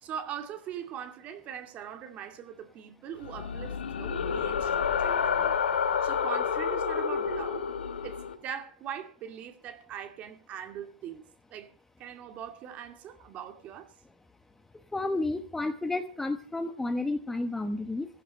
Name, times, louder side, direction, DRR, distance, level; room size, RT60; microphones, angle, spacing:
voice 1, 0.0-5.6 6.0-7.7 8.0-11.7 12.0-13.9, right 9 dB, 25° right, 2.3 m, -41 dB
sound 1, 3.2-8.3, left 7 dB, 85° left, 2.6 m, -29 dB
voice 2, 14.9-18.1, left 2 dB, 5° left, 0.9 m, -31 dB
15.5 x 15.0 x 5.3 m
hypercardioid pair, 150°, 6 cm